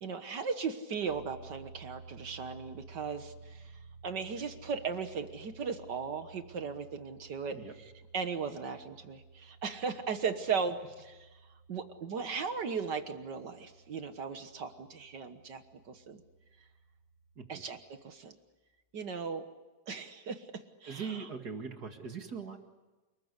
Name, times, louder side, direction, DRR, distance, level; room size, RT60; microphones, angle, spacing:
voice 1, 0.0-3.6 4.0-11.3 11.7-15.6 15.9-16.2 17.5-17.8 18.0-18.3 18.9-19.4 19.9-20.4 20.8-21.3, right 5 dB, 60° right, 8 dB, 1.1 m, -37 dB
sound 1, 1.1-17.4, right 4 dB, 25° left, 6.7 m, -55 dB
voice 2, 20.9-22.6, right 5 dB, 35° right, 5 dB, 2.0 m, -41 dB
29.5 x 20.5 x 9.8 m, 1.2 s
omnidirectional pair, 3.8 m